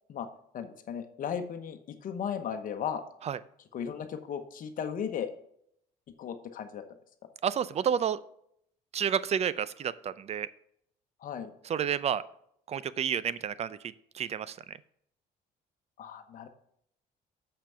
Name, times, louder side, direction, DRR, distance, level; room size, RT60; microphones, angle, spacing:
voice 1, 0.5-3.0 3.7-5.3 6.2-6.8 11.2-11.5 16.0-16.5, left 8 dB, 55° left, 7 dB, 1.0 m, -36 dB
voice 2, 7.4-8.2 8.9-10.5 11.7-12.2 12.7-13.8 14.1-14.8, right 8 dB, 40° right, 17 dB, 0.5 m, -30 dB
6.7 x 5.9 x 5.6 m, 0.70 s
cardioid pair, 110°, 17 cm